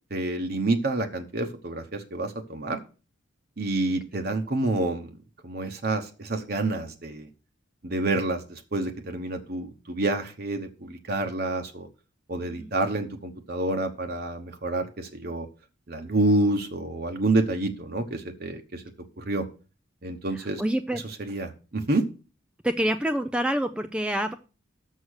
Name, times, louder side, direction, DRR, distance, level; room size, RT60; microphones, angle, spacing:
voice 1, 0.1-2.8 3.6-5.1 5.4-7.3 7.8-11.9 12.3-15.5 15.9-18.8 19.2-19.5 20.0-20.6 21.2-22.0, right 2 dB, 50° right, 5 dB, 0.9 m, -28 dB
voice 2, 20.3-21.0 22.6-24.3, right 1 dB, 5° right, 7 dB, 0.3 m, -27 dB
6.5 x 6.5 x 6.4 m, 0.34 s
head